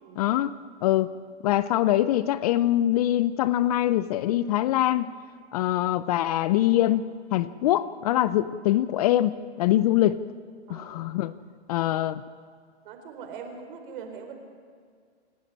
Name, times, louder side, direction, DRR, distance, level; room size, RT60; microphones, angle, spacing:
voice 1, 0.2-0.5 0.8-1.1 1.4-5.1 5.5-10.2 10.7-11.3 11.7-12.2, left 13 dB, 35° left, 16 dB, 0.5 m, -23 dB
voice 2, 10.7-11.1 12.8-14.3, right 6 dB, 50° right, 5 dB, 4.4 m, -42 dB
28.0 x 11.0 x 9.7 m, 2.1 s
hypercardioid pair, 140°, 34 cm